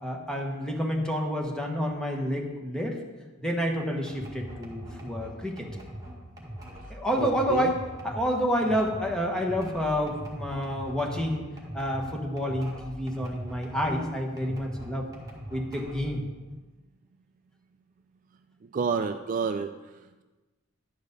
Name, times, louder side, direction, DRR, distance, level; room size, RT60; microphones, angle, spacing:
voice 1, 0.0-3.0 3.4-5.7 6.9-11.4 11.7-15.1 15.5-16.2, equal, 5° left, 1 dB, 1.2 m, -29 dB
sound 1, 4.1-14.0 14.4-16.1, right 1 dB, 15° right, 1.8 m, -41 dB
voice 2, 7.2-7.7 18.7-19.7, right 5 dB, 40° right, 8 dB, 0.3 m, -29 dB
10.5 x 5.0 x 6.6 m, 1.2 s
head